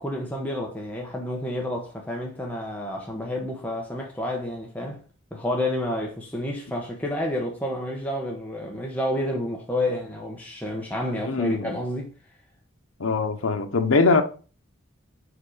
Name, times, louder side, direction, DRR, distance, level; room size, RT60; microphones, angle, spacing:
voice 1, 0.0-5.0 5.3-12.1, left 1 dB, 10° left, 1.0 m, -30 dB
voice 2, 11.2-11.7 13.0-14.2, left 3 dB, 90° left, 0.8 m, -22 dB
4.9 x 4.6 x 4.9 m
head